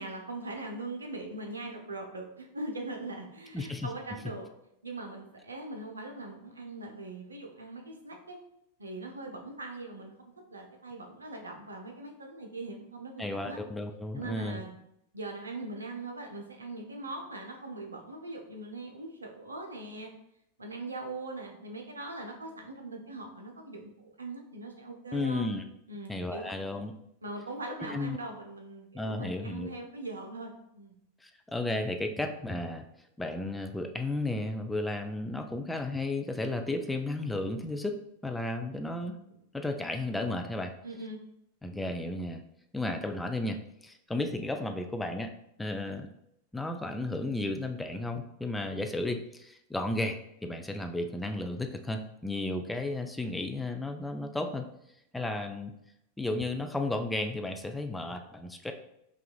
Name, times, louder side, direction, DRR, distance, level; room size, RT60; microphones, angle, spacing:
voice 1, 0.0-4.5 4.8-8.4 8.8-10.1 10.5-13.6 14.1-14.7 15.1-20.1 20.6-25.5 25.9-26.6 27.2-31.0 40.8-41.2, right 2 dB, 75° right, 2 dB, 0.7 m, -41 dB
voice 2, 3.5-3.9 13.2-14.6 25.1-25.6 26.1-26.9 27.8-28.2 28.9-29.7 31.2-32.9 33.2-39.2 39.5-40.7 41.6-42.4 42.7-45.3 45.6-46.1 46.5-54.7 55.1-55.7 56.2-58.7, left 2 dB, 5° left, 5 dB, 0.3 m, -33 dB
5.6 x 2.4 x 2.2 m, 0.78 s
figure-of-eight pair, 90°, 0 cm